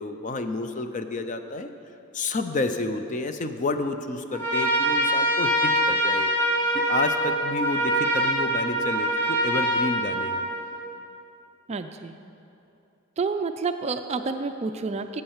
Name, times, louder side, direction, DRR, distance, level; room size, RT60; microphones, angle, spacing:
voice 1, 0.0-1.7 2.1-6.3 6.7-10.5, left 2 dB, 35° left, 8 dB, 0.5 m, -30 dB
Trumpet, 4.3-10.9, right 1 dB, 10° left, 1.3 m, -24 dB
voice 2, 11.7-12.1 13.2-15.2, right 4 dB, 30° right, 8 dB, 0.3 m, -29 dB
8.7 x 7.9 x 7.2 m, 2.7 s
head